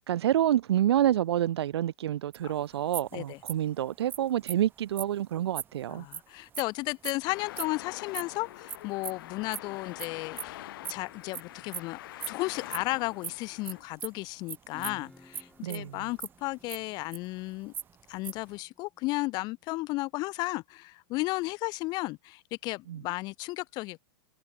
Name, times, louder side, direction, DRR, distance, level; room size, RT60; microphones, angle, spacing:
voice 1, 0.1-6.0 15.6-16.0 22.9-23.0, right 11 dB, 75° right, 2.4 m, -28 dB
sound 1, 2.3-2.4 2.9-3.1 3.5-3.7 4.1-4.2 4.5-4.6 5.0-5.1 5.5-5.7 6.1-6.2 6.5-6.6 7.0-7.1 7.6-7.7 8.1-8.2 8.7-8.8 9.0-9.1 9.5-9.6 10.0-10.1 10.4-10.5 10.8-11.4 11.7-11.8 12.2-12.3 12.6-12.8 13.2-13.3 13.6-13.7 14.0-14.2 14.5-14.6 14.8-15.0 15.3-15.4 15.7-16.3 16.7-17.4 17.7-18.5, right 8 dB, 15° right, 1.8 m, -37 dB
voice 2, 5.9-12.0 12.3-17.7 18.1-24.0, left 22 dB, 30° left, 2.4 m, -34 dB
Traffic noise roadway noise, 7.2-13.8, left 15 dB, 55° left, 3.2 m, -45 dB
Acoustic guitar / Strum, 14.7-20.1, left 2 dB, 5° left, 6.4 m, -57 dB
supercardioid pair, 165°, 14 cm